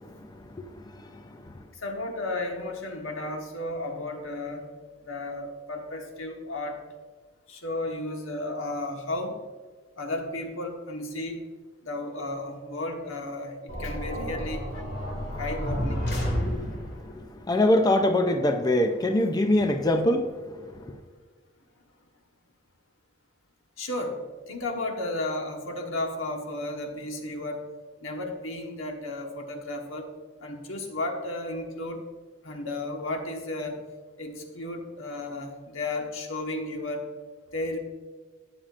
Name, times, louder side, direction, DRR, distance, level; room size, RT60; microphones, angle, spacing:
voice 1, 0.0-1.5 15.1-15.3 16.2-21.0, left 1 dB, 20° left, 5 dB, 0.5 m, -25 dB
voice 2, 1.7-4.7 5.0-6.8 7.5-9.4 10.0-11.4 11.8-14.9 15.4-16.1 23.8-24.2 24.5-27.6 28.0-30.1 30.4-32.0 32.4-33.8 34.2-37.1 37.5-37.8, left 2 dB, 80° left, 3 dB, 1.3 m, -33 dB
sound 1, 13.7-17.0, equal, 55° left, 2.2 m, -31 dB
12.5 x 8.8 x 2.5 m, 1.5 s
head